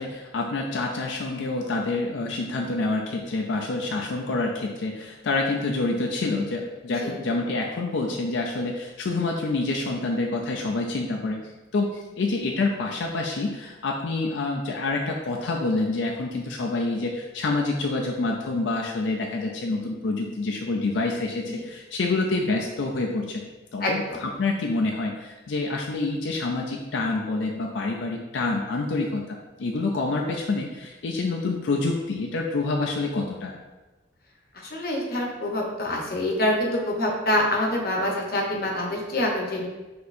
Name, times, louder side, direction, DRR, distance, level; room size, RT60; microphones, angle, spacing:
voice 1, 0.0-23.4 23.7-33.5, left 3 dB, 90° left, 0 dB, 0.4 m, -27 dB
voice 2, 23.8-24.2 34.7-39.7, left 1 dB, 55° left, -1 dB, 0.8 m, -26 dB
6.1 x 2.8 x 2.5 m, 1.1 s
head